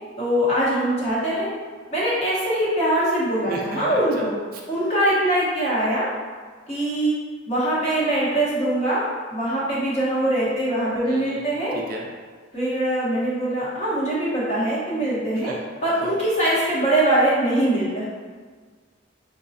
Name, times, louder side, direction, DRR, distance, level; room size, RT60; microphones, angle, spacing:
voice 1, 0.2-1.5 1.9-4.3 4.7-6.1 6.7-7.1 7.5-11.7 12.5-15.5 15.8-18.0, right 1 dB, 35° left, -8 dB, 1.0 m, -22 dB
voice 2, 3.5-4.6 11.1-12.1 15.4-15.6 16.0-16.2, right 2 dB, 45° right, -1 dB, 0.4 m, -34 dB
4.9 x 2.2 x 2.6 m, 1.5 s
head